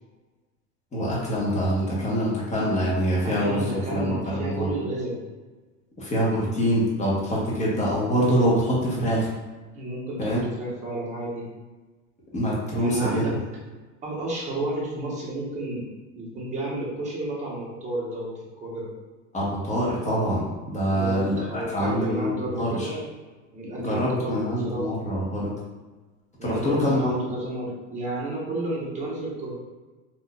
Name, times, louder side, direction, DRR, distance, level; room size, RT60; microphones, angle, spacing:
voice 1, 0.9-4.7 6.0-9.3 10.2-10.4 12.3-13.3 19.3-21.4 21.7-22.9 23.8-25.5 26.4-27.1, equal, 20° left, -6 dB, 1.1 m, -25 dB
voice 2, 3.2-5.1 9.7-11.4 12.7-13.3 14.0-15.9 16.1-18.3 18.6-18.9 20.8-23.0 23.5-24.3 24.6-25.0 26.4-29.5, right 2 dB, 20° right, -5 dB, 1.0 m, -31 dB
3.5 x 2.6 x 2.3 m, 1.3 s
supercardioid pair, 120°, 35 cm